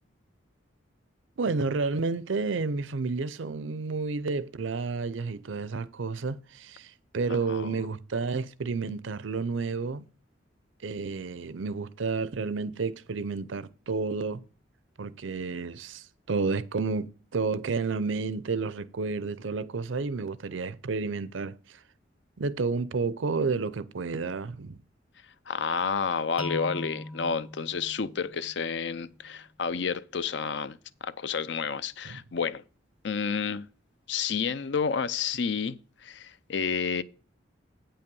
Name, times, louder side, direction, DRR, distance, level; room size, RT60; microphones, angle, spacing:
voice 1, 1.4-10.0 10.8-14.4 15.0-21.5 22.4-24.8 32.1-32.2, right 4 dB, 75° right, 0.6 m, -31 dB
voice 2, 7.5-7.9 25.5-30.8 31.0-32.6 33.0-33.7 34.1-37.0, left 6 dB, 65° left, 0.5 m, -30 dB
sound 1, 26.4-29.3, left 1 dB, 5° right, 0.4 m, -41 dB
8.8 x 5.6 x 5.3 m
head